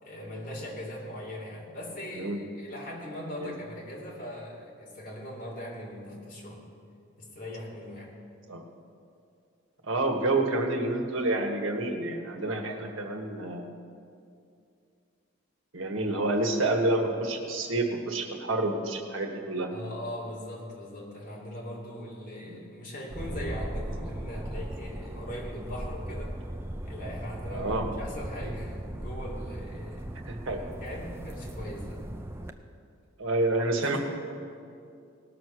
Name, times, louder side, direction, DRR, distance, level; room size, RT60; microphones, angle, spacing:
voice 1, 0.0-6.7 7.2-8.1 12.6-12.8 19.7-26.4 26.8-30.2 30.8-32.0 33.8-34.0, left 1 dB, 40° left, -4 dB, 2.7 m, -40 dB
voice 2, 9.8-13.7 15.7-19.7 22.4-22.6 27.5-27.9 30.2-30.6 33.2-34.0, right 2 dB, 90° right, 3 dB, 1.4 m, -28 dB
sound 1, 23.1-32.5, right 1 dB, 15° right, 0.4 m, -38 dB
18.5 x 6.4 x 6.2 m, 2.5 s
head